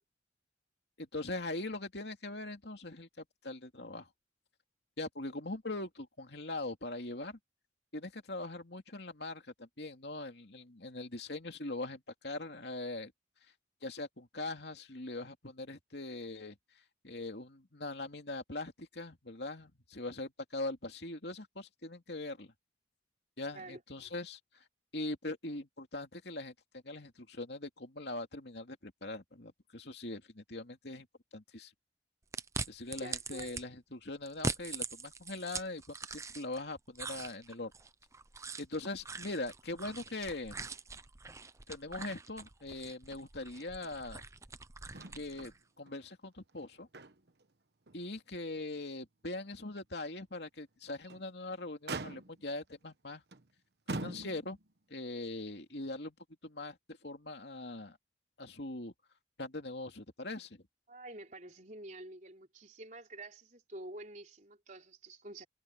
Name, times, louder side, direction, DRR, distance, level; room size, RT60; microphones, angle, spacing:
voice 1, 1.0-4.1 5.0-7.4 7.9-13.1 13.8-16.5 17.0-22.5 23.4-24.4 24.9-26.5 26.8-31.1 31.3-31.7 32.7-37.7 38.6-40.6 41.7-44.2 45.1-45.5 45.8-46.9 47.9-53.2 53.9-54.6 54.9-56.1 56.4-56.8 57.0-58.0 58.4-58.9 59.4-60.6, left 2 dB, 65° left, 2.7 m, -41 dB
voice 2, 23.5-24.1 33.0-33.5 60.9-65.5, right 2 dB, 40° right, 4.1 m, -49 dB
sound 1, 32.3-33.6 34.3-36.6 36.9-45.6, right 4 dB, 15° right, 0.6 m, -42 dB
Motor vehicle (road), 44.9-45.5 45.9-46.0 46.5-47.4 47.9-48.0 48.5-48.6 50.8-51.3 51.9-52.5 53.3-53.5 53.9-54.7 55.7-55.8, right 2 dB, 60° right, 1.2 m, -42 dB
head